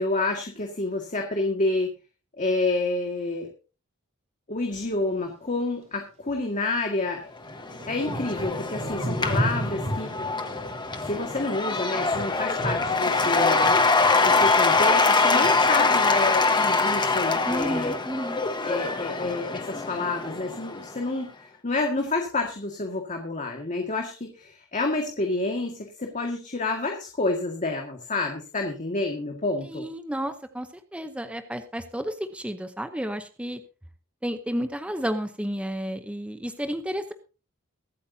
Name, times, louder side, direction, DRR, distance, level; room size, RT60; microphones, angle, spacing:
voice 1, 0.0-1.9 2.4-3.5 4.5-7.2 7.9-10.1 11.0-13.7 14.2-17.9 18.6-21.3 21.6-29.9, left 2 dB, 35° left, 2 dB, 1.9 m, -29 dB
Thunder / Rain, 6.3-6.4 7.1-16.6 16.9-17.8 18.3-18.7 18.9-19.8 20.4-20.5, right 1 dB, 35° right, 4.2 m, -35 dB
Cheering / Applause / Crowd, 7.5-20.9, left 3 dB, 20° left, 1.3 m, -24 dB
voice 2, 17.5-18.4 29.7-33.6 34.2-37.1, equal, 5° right, 8 dB, 0.8 m, -31 dB
23.0 x 8.6 x 2.8 m, 0.33 s
head